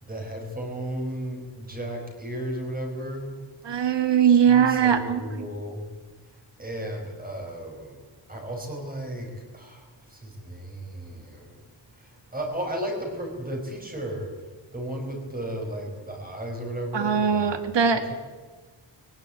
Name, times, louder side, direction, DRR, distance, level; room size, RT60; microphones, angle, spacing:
voice 1, 0.0-3.4 4.2-5.8 6.6-8.0 8.3-9.8 10.1-11.6 12.0-14.3 14.7-17.5 18.1-18.2, right 1 dB, 20° right, 2 dB, 5.4 m, -34 dB
voice 2, 3.6-5.2 16.9-18.0, right 7 dB, 65° right, 9 dB, 2.3 m, -20 dB
23.5 x 18.0 x 8.9 m, 1.3 s
wide cardioid pair, 175°, 45 cm